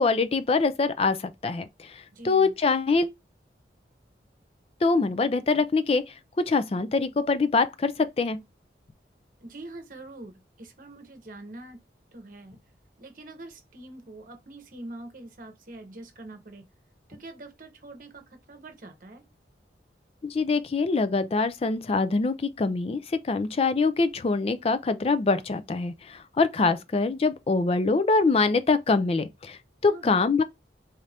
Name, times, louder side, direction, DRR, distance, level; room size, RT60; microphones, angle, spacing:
voice 1, 0.0-3.1 4.8-8.4 20.2-30.4, left 4 dB, 35° left, 0.3 m, -24 dB
voice 2, 2.1-2.5 9.4-11.8 12.1-12.6 13.0-16.7 17.1-19.2 29.8-30.1, right 2 dB, 50° right, 0.9 m, -44 dB
4.2 x 2.5 x 3.3 m
head